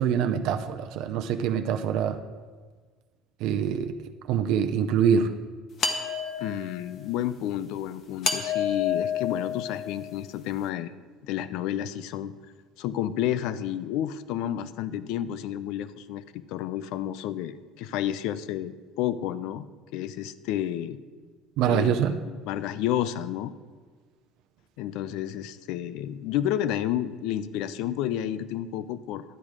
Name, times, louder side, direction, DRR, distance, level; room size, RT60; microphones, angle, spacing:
voice 1, 0.0-2.2 3.4-4.0 4.3-5.3 21.6-22.1, right 8 dB, 60° right, 7 dB, 0.6 m, -24 dB
sound 1, 5.8-6.9 8.2-10.1, left 7 dB, 35° left, 1.1 m, -29 dB
voice 2, 6.4-10.9 11.3-12.3 12.8-19.6 19.9-21.0 21.7-22.0 22.2-23.5 24.8-29.2, left 11 dB, 65° left, 15 dB, 0.6 m, -30 dB
12.0 x 9.0 x 4.9 m, 1.5 s
cardioid pair, 160°, 0 cm